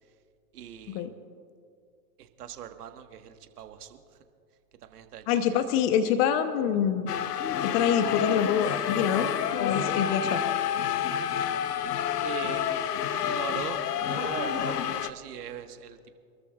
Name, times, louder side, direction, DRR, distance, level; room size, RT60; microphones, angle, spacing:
voice 1, 0.5-1.1 2.2-4.0 4.8-6.2 11.7-11.9 12.2-16.1, right 9 dB, 75° right, 7 dB, 1.5 m, -41 dB
voice 2, 5.3-7.1 7.6-9.3 9.6-10.4, left 8 dB, 40° left, 10 dB, 0.9 m, -25 dB
sound 1, 7.1-15.1, left 9 dB, 80° left, 0.9 m, -29 dB
27.5 x 13.5 x 2.4 m, 2.4 s
hypercardioid pair, 125°, 47 cm